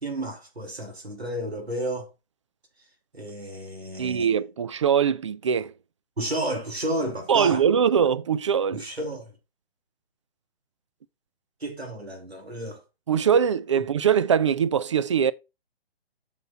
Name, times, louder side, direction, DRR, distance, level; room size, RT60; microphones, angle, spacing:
voice 1, 0.0-2.1 3.1-4.3 6.2-7.6 8.7-9.3 11.6-12.8, right 1 dB, 85° right, 2.9 m, -32 dB
voice 2, 4.0-5.7 7.3-8.9 13.1-15.3, right 7 dB, 30° right, 0.4 m, -22 dB
7.8 x 5.9 x 4.4 m
figure-of-eight pair, 135°, 31 cm